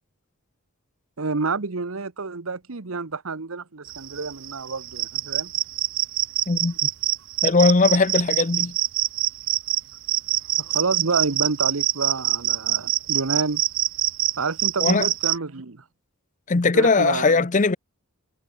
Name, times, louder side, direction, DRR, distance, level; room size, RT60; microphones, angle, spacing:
voice 1, 1.2-5.5 10.6-13.6 14.4-15.8 16.7-17.4, right 4 dB, 80° right, 1.1 m, -28 dB
sound 1, 3.9-15.4, right 15 dB, 65° right, 0.6 m, -25 dB
voice 2, 6.5-6.9 7.4-8.7 14.8-15.1 16.5-17.8, left 3 dB, 35° left, 0.7 m, -19 dB
head